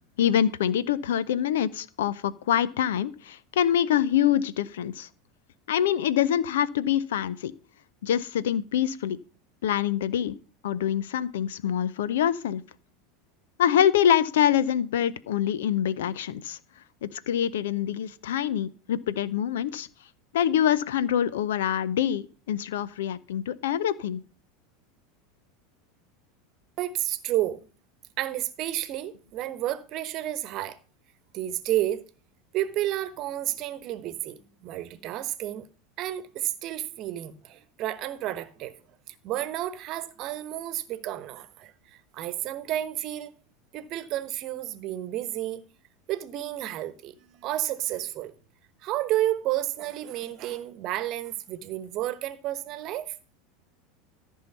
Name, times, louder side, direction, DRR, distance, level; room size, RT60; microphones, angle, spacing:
voice 1, 0.2-5.1 5.7-7.5 8.0-9.2 9.6-10.4 10.6-12.6 13.6-16.6 17.0-19.9 20.3-24.2, left 10 dB, 70° left, 0.6 m, -25 dB
voice 2, 26.8-27.7 28.2-30.8 31.3-32.0 32.5-35.7 36.0-38.7 39.1-43.3 43.7-45.6 46.1-48.3 48.8-53.1, right 14 dB, 50° right, 1.0 m, -31 dB
14.0 x 5.5 x 5.5 m
hypercardioid pair, 80°, 0 cm